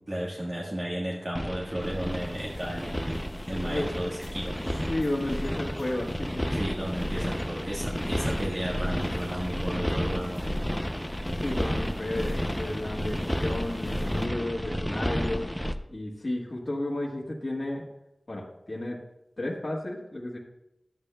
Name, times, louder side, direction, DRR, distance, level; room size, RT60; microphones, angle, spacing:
voice 1, 0.1-4.8 6.5-10.5, right 1 dB, 40° right, -3 dB, 1.4 m, -34 dB
sound 1, 1.3-15.7, equal, 5° left, 0.5 m, -31 dB
sound 2, 1.8-14.3, left 2 dB, 80° left, 0.6 m, -45 dB
voice 2, 3.5-3.9 4.9-6.6 11.4-15.5 15.9-17.8 18.3-19.0 19.4-20.4, left 1 dB, 50° left, -4 dB, 1.4 m, -32 dB
11.5 x 8.7 x 2.2 m, 0.89 s
wide cardioid pair, 55°, 0 cm